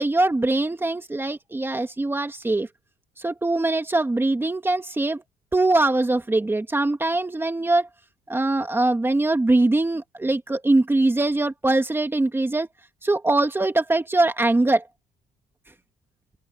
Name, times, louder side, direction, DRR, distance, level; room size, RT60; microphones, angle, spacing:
voice 1, 0.0-2.7 3.2-5.2 5.5-7.9 8.3-12.7 13.0-14.8, right 2 dB, 15° right, 2.1 m, -22 dB
open air
cardioid pair, 110°, 17 cm